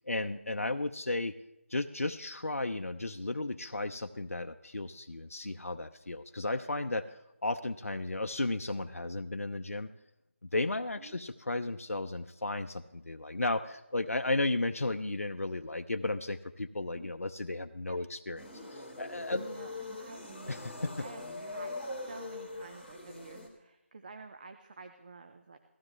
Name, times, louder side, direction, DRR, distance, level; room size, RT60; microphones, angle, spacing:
voice 1, 0.1-1.3 1.7-7.1 7.4-9.9 10.4-18.4 18.7-19.4 20.5-20.9, left 2 dB, 90° left, 7 dB, 0.7 m, -34 dB
sound 1, 18.4-23.5, left 2 dB, ahead, 1.5 m, -42 dB
voice 2, 19.0-20.4 20.8-21.8 22.0-25.6, right 4 dB, 35° right, 7 dB, 0.8 m, -50 dB
17.5 x 15.0 x 3.2 m, 0.91 s
figure-of-eight pair, 170°, 7 cm